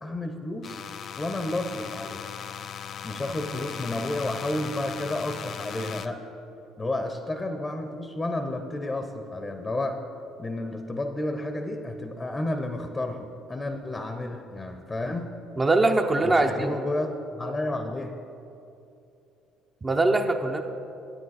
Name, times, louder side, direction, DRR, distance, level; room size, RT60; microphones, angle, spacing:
voice 1, 0.0-0.8 1.2-2.3 3.0-6.3 6.8-10.0 10.4-15.4 16.2-18.2, left 1 dB, 25° left, 7 dB, 0.8 m, -31 dB
sound 1, 0.6-6.1, left 8 dB, 55° left, 0.4 m, -38 dB
voice 2, 15.6-16.8 19.8-20.6, right 2 dB, 25° right, 4 dB, 0.7 m, -22 dB
10.0 x 9.0 x 4.1 m, 2.8 s
supercardioid pair, 70°, 0 cm